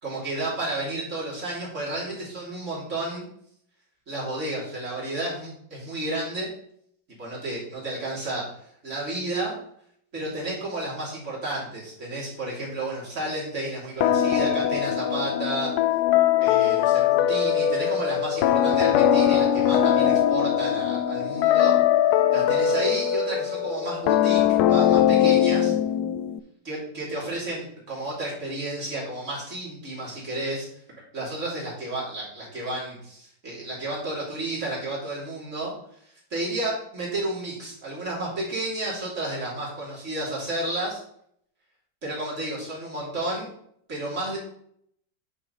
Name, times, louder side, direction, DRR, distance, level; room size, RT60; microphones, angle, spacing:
voice 1, 0.0-3.3 4.1-6.5 7.2-8.5 8.8-9.6 10.1-15.7 16.4-21.8 22.3-25.7 26.6-30.7 31.1-35.7 36.3-41.0 42.0-43.5 43.9-44.4, right 2 dB, 40° right, -5 dB, 3.6 m, -31 dB
sound 1, 14.0-26.4, left 10 dB, 70° left, 1.0 m, -21 dB
8.8 x 6.0 x 4.2 m, 0.68 s
omnidirectional pair, 2.1 m